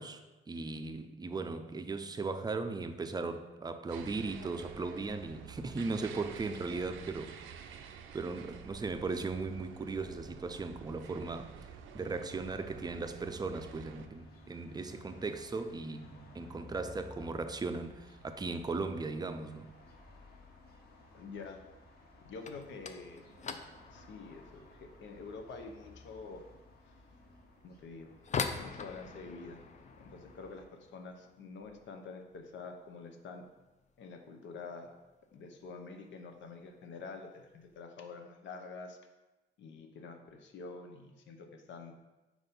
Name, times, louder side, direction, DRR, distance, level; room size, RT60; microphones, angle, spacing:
voice 1, 0.0-7.8 8.1-11.6 11.9-19.7, right 3 dB, 20° right, 0.5 m, -38 dB
sound 1, 3.9-14.1, right 7 dB, 85° right, 0.5 m, -49 dB
sound 2, 11.6-30.7, left 1 dB, 50° left, 1.4 m, -57 dB
voice 2, 21.1-21.7 22.2-23.2 23.9-26.4 27.6-28.3 28.6-29.6 30.0-30.7 30.9-33.5 34.0-34.9 35.3-39.0 39.6-41.9, left 4 dB, 70° left, 0.8 m, -47 dB
sound 3, 22.3-33.1 33.4-34.0 34.2-34.5 34.9-35.0 35.7-35.8 36.7-36.9 37.2-37.7, left 5 dB, 35° left, 0.5 m, -44 dB
4.7 x 4.1 x 5.2 m
cardioid pair, 90°, 20 cm